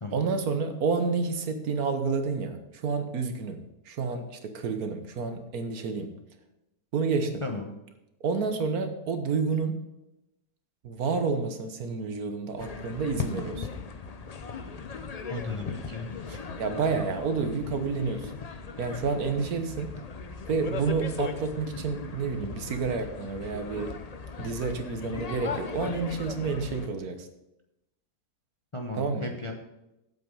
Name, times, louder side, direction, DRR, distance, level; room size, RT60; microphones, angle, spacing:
voice 1, 0.1-6.1 6.9-7.4 8.2-9.8 10.8-13.7 16.6-18.3 18.8-20.0 20.5-24.0 24.4-27.3 28.9-29.3, right 4 dB, 65° right, 7 dB, 1.5 m, -29 dB
voice 2, 7.4-7.7 15.3-16.4 28.7-29.5, left 2 dB, 25° left, 2 dB, 0.8 m, -35 dB
sound 1, 12.6-26.9, left 5 dB, 85° left, 0.3 m, -38 dB
8.5 x 7.9 x 5.3 m, 0.91 s
omnidirectional pair, 1.7 m